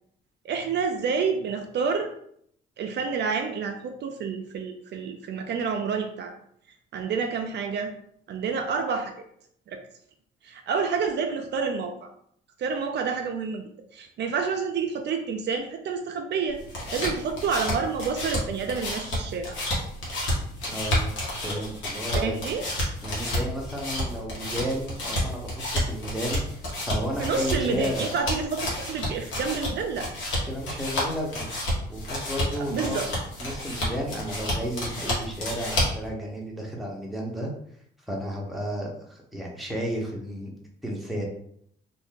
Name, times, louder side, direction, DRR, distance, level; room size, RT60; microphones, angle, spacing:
voice 1, 0.4-2.1 2.8-6.3 6.9-7.9 8.3-9.1 9.7-9.8 10.4-12.1 12.6-13.6 13.9-16.6 16.9-19.6 22.1-22.6 27.2-30.1 32.7-33.1, right 5 dB, 60° right, 4 dB, 0.4 m, -28 dB
sound 1, 16.5-36.1, left 1 dB, 80° left, 1.2 m, -30 dB
voice 2, 20.7-21.1 21.4-22.4 23.0-28.1 30.4-31.5 31.9-33.0 33.4-37.5 38.0-40.5 40.8-41.2, equal, ahead, -2 dB, 0.9 m, -32 dB
2.6 x 2.5 x 3.6 m, 0.67 s
cardioid pair, 90°, 20 cm